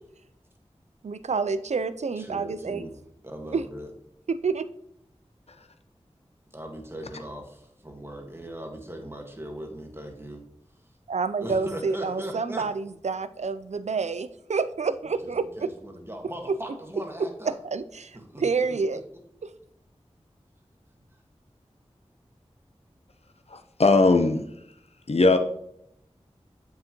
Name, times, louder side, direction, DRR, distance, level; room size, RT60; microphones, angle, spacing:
voice 1, 1.0-2.8 3.5-3.7 4.3-4.7 11.1-15.7 17.5-18.1 18.4-19.0, right 4 dB, 75° right, 14 dB, 0.4 m, -28 dB
voice 2, 2.2-2.9 3.2-3.9 6.5-10.4 11.4-12.7 15.2-17.6 18.1-18.4 18.7-18.8, right 1 dB, 20° right, 2 dB, 1.5 m, -39 dB
voice 3, 23.5-24.4 25.1-25.4, left 3 dB, 65° left, 7 dB, 0.8 m, -19 dB
7.4 x 6.0 x 3.0 m, 0.72 s
wide cardioid pair, 40°, 12 cm